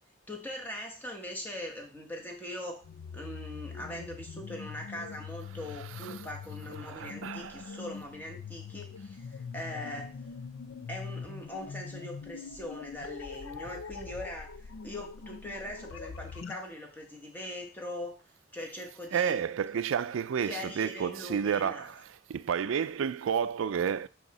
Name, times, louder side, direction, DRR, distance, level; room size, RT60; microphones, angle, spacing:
voice 1, 0.3-2.8 3.1-10.2 10.9-18.2 18.5-19.4 20.4-21.9, left 1 dB, 10° left, 1.1 m, -41 dB
sound 1, 2.8-16.6, left 5 dB, 80° left, 0.4 m, -43 dB
voice 2, 6.8-7.7 19.1-22.0 22.3-24.1, right 7 dB, 85° right, 0.4 m, -31 dB
8.0 x 2.9 x 4.2 m
head